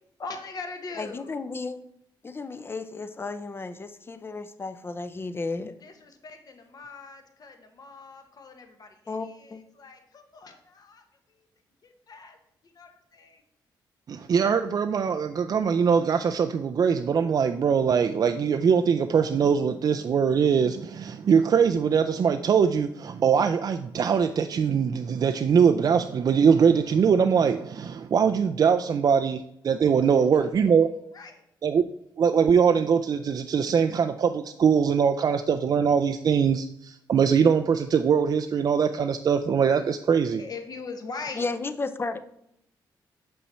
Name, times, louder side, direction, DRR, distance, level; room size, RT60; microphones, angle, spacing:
voice 1, 0.2-1.5 5.8-11.0 11.4-11.5 11.8-12.4 12.6-13.4 30.1-30.5 31.1-31.4 40.3-41.4, left 4 dB, 50° left, 6 dB, 1.1 m, -41 dB
voice 2, 1.0-1.8 2.2-5.7 9.1-9.6 41.4-42.2, left 3 dB, 25° left, 12 dB, 0.6 m, -33 dB
voice 3, 14.1-30.9 31.6-31.9 32.2-40.4, right 6 dB, 50° right, 7 dB, 0.4 m, -22 dB
6.3 x 5.5 x 4.2 m, 0.76 s
cardioid pair, 75°, 8 cm